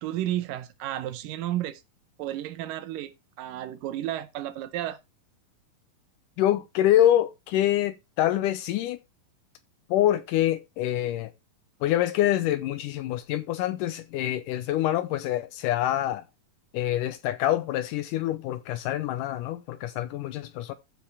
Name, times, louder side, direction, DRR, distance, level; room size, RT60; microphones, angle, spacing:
voice 1, 0.0-1.8 2.2-3.1 3.4-5.0, right 13 dB, 80° right, 2.2 m, -32 dB
voice 2, 6.4-9.0 9.9-11.3 11.8-16.3 16.7-20.7, left 12 dB, 80° left, 2.0 m, -26 dB
15.0 x 5.0 x 3.4 m
omnidirectional pair, 4.1 m